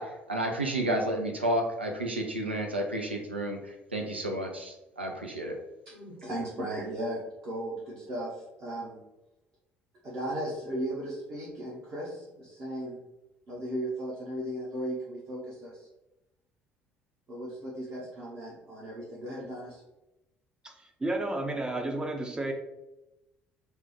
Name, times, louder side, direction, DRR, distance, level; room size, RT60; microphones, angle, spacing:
voice 1, 0.0-5.6, right 1 dB, 90° right, 2 dB, 0.3 m, -31 dB
voice 2, 5.8-9.0 10.0-13.0 13.5-15.9 17.3-19.8, right 1 dB, 40° right, -6 dB, 0.9 m, -36 dB
voice 3, 21.0-22.5, right 2 dB, 15° right, 4 dB, 0.5 m, -31 dB
3.4 x 2.2 x 2.8 m, 0.94 s
figure-of-eight pair, 55°, 6 cm